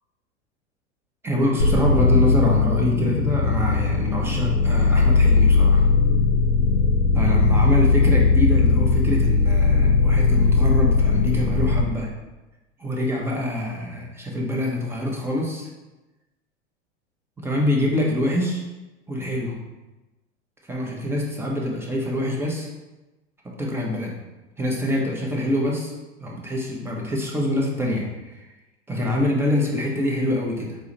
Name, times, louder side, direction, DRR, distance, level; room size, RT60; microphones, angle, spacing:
voice 1, 1.2-5.9 7.1-12.1 12.8-15.7 17.4-18.6 19.1-19.5 20.7-22.7 23.4-24.2 24.6-25.9 26.2-28.4 28.9-30.8, left 1 dB, 5° right, -2 dB, 0.6 m, -25 dB
sound 1, 1.6-11.8, left 4 dB, 70° left, 0.6 m, -18 dB
4.7 x 2.1 x 3.9 m, 1.1 s
figure-of-eight pair, 90°, 35 cm